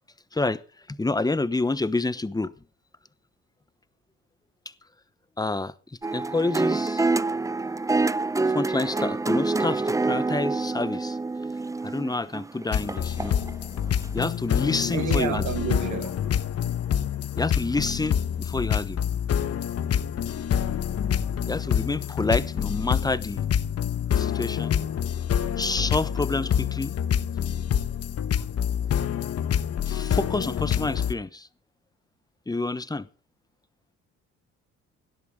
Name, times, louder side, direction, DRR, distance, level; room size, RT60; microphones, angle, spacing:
voice 1, 0.9-2.5 5.4-5.7 6.1-7.1 8.5-11.2 11.8-13.4 14.1-15.4 17.4-19.0 21.5-23.5 24.2-24.8 25.6-26.9 29.8-31.5 32.5-33.1, left 2 dB, 15° left, 1.0 m, -28 dB
sound 1, 6.0-13.5 14.0-14.1, right 3 dB, 10° right, 0.6 m, -26 dB
sound 2, 12.7-31.1, left 9 dB, 55° left, 1.2 m, -27 dB
voice 2, 14.7-16.4, right 10 dB, 75° right, 1.5 m, -31 dB
17.5 x 12.0 x 3.7 m
cardioid pair, 90°, 30 cm